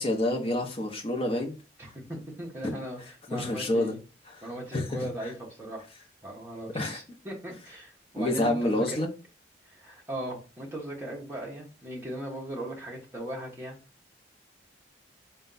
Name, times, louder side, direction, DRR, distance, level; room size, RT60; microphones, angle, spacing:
voice 1, 0.0-1.6 2.6-2.7 3.3-3.9 4.3-4.4 4.7-5.3 6.7-7.0 8.2-9.1, left 1 dB, 30° left, 0.7 m, -28 dB
voice 2, 1.8-4.0 4.4-5.9 6.2-9.0 9.6-13.8, right 1 dB, 10° right, 1.0 m, -38 dB
4.3 x 2.3 x 3.9 m
head